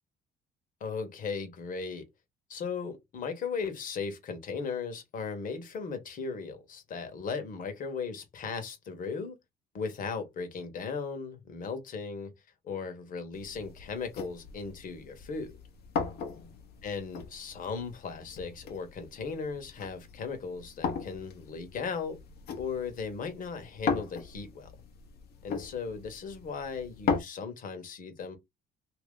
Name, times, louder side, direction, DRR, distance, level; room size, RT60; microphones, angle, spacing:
voice 1, 0.8-2.1 2.5-9.4 9.7-12.3 12.6-15.5 16.8-22.2 22.6-24.7 25.4-28.4, left 5 dB, 55° left, 1.3 m, -37 dB
sound 1, 13.3-27.2, left 6 dB, 70° left, 1.1 m, -38 dB
2.9 x 2.9 x 3.7 m
cardioid pair, 110°, 17 cm